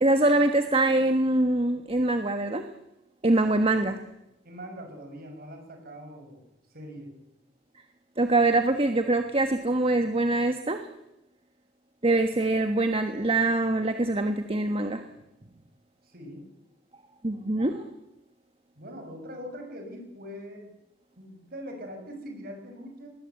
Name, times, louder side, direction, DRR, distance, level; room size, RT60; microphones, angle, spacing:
voice 1, 0.0-2.6 3.2-4.0 8.2-10.9 12.0-15.0 17.2-17.8, right 2 dB, 30° right, 7 dB, 1.3 m, -24 dB
voice 2, 4.4-6.4 6.7-7.1 16.0-16.4 18.8-20.7 21.2-23.1, equal, 55° right, 4 dB, 6.4 m, -42 dB
21.0 x 20.0 x 8.4 m, 0.89 s
head